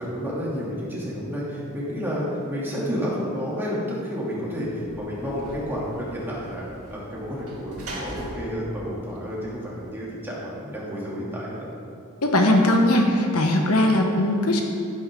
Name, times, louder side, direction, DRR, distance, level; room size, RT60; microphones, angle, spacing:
voice 1, 0.0-11.7, equal, 10° right, -7 dB, 2.9 m, -30 dB
Sliding door / Slam, 4.6-9.9, equal, 80° right, 2.7 m, -41 dB
voice 2, 12.2-14.6, left 1 dB, 80° left, 2 dB, 1.3 m, -19 dB
12.0 x 10.5 x 3.8 m, 2.6 s
head